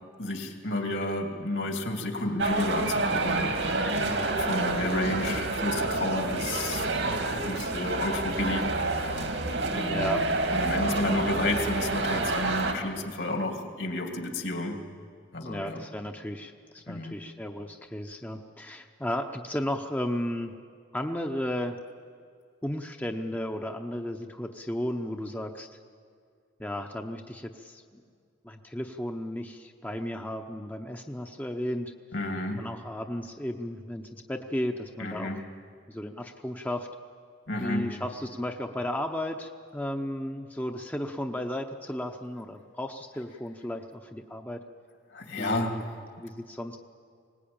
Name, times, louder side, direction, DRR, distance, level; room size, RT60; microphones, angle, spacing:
voice 1, 0.2-4.0 4.4-9.2 9.7-10.2 10.5-14.8 15.3-15.8 16.9-17.1 32.1-32.7 35.0-35.4 37.5-38.0 45.1-45.8, left 1 dB, 70° left, 3 dB, 2.8 m, -31 dB
sound 1, 2.4-12.7, right 2 dB, 75° right, 2.4 m, -28 dB
voice 2, 4.0-4.4 4.8-5.4 9.9-10.3 10.8-10.9 15.4-20.5 20.9-21.8 22.6-25.7 26.6-28.0 28.4-31.9 32.6-35.4 35.9-36.9 37.6-44.6 45.4-45.8 46.2-46.8, left 1 dB, 10° left, 4 dB, 0.8 m, -34 dB
22.5 x 19.5 x 8.8 m, 2.2 s
head